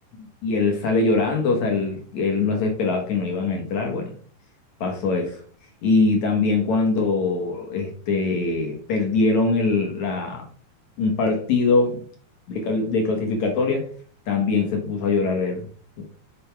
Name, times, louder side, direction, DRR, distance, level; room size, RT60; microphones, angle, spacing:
voice 1, 0.4-4.2 4.8-5.4 5.8-10.4 11.0-12.0 12.5-13.9 14.3-15.7 16.0-16.1, left 3 dB, 60° left, 2 dB, 2.0 m, -22 dB
7.0 x 6.6 x 3.3 m, 0.43 s
omnidirectional pair, 4.8 m